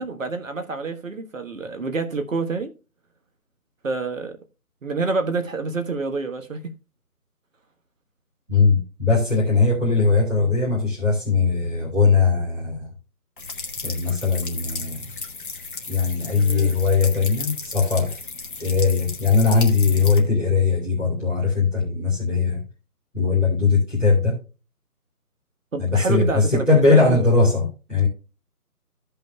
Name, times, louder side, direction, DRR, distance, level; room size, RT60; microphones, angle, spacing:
voice 1, 0.0-2.7 3.8-4.4 4.8-6.7 16.3-16.7 25.7-27.2, right 3 dB, 55° right, 1.4 m, -27 dB
voice 2, 8.5-12.9 13.8-15.1 15.9-18.2 18.6-22.6 23.1-24.4 25.8-28.1, left 4 dB, ahead, 1.0 m, -20 dB
sound 1, 13.4-20.2, left 4 dB, 35° left, 1.3 m, -34 dB
15.5 x 5.6 x 2.3 m
figure-of-eight pair, 160°, 46 cm